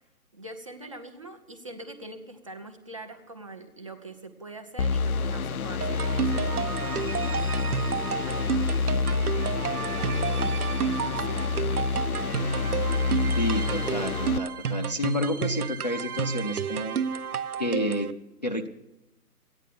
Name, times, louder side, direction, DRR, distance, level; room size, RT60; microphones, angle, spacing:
voice 1, 0.3-9.0 10.0-10.6 10.9-12.0, right 2 dB, 20° right, 5 dB, 0.7 m, -44 dB
sound 1, 4.8-14.4, left 4 dB, 65° left, 0.7 m, -28 dB
sound 2, 5.8-18.1, right 7 dB, 70° right, 0.9 m, -31 dB
voice 2, 13.3-17.0 17.6-18.1 18.4-18.7, left 1 dB, 30° left, 3 dB, 0.5 m, -30 dB
14.5 x 10.0 x 9.1 m, 0.95 s
hypercardioid pair, 160°, 47 cm